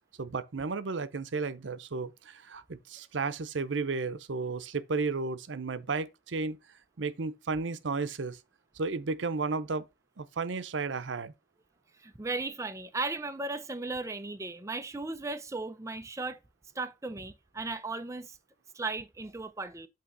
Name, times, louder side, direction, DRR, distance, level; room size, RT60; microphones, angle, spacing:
voice 1, 0.2-6.6 7.0-8.4 8.8-9.9 10.2-11.3, right 4 dB, 90° right, 0.7 m, -33 dB
voice 2, 12.0-16.4 16.7-18.4 18.7-19.9, right 3 dB, 15° right, 0.5 m, -36 dB
8.6 x 2.9 x 6.1 m
head